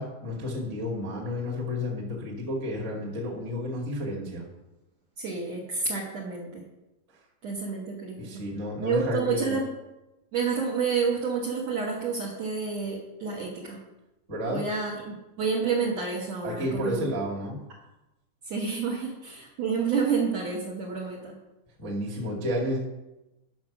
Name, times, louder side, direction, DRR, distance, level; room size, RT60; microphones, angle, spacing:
voice 1, 0.0-4.4 8.2-9.6 14.3-14.6 16.4-17.6 21.8-22.8, left 1 dB, 35° right, -3 dB, 1.2 m, -31 dB
voice 2, 5.2-6.6 7.4-8.2 8.8-9.7 10.3-13.8 14.5-16.9 18.5-21.3, right 5 dB, 85° right, -4 dB, 1.4 m, -29 dB
10.5 x 6.2 x 6.0 m, 0.98 s
omnidirectional pair, 5.3 m